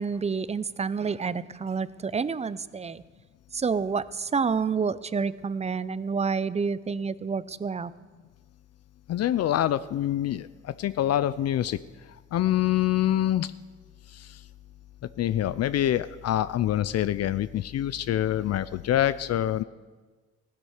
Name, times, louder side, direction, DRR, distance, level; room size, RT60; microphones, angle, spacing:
voice 1, 0.0-3.0 3.5-7.9, right 5 dB, 20° right, 17 dB, 0.5 m, -28 dB
voice 2, 9.1-11.8 12.3-13.5 14.1-14.4 15.2-19.6, left 12 dB, 55° left, 15 dB, 0.5 m, -25 dB
16.0 x 12.5 x 5.0 m, 1.4 s
cardioid pair, 90°, 30 cm